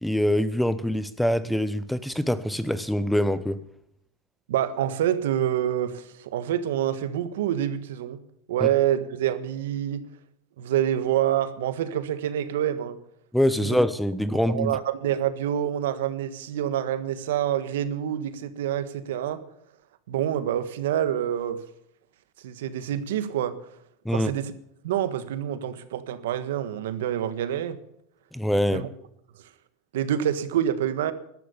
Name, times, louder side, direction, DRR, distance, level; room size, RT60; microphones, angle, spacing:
voice 1, 0.0-3.6 13.3-14.8 24.0-24.3 28.3-28.9, equal, ahead, 0.7 m, -24 dB
voice 2, 4.5-8.2 8.5-10.0 10.6-13.0 13.6-13.7 14.5-19.4 20.1-21.6 22.4-23.6 24.1-24.5 24.8-27.8 28.7-28.9 29.9-31.1, right 10 dB, 85° right, 1.5 m, -27 dB
13.5 x 12.0 x 7.0 m
supercardioid pair, 150°, 0 cm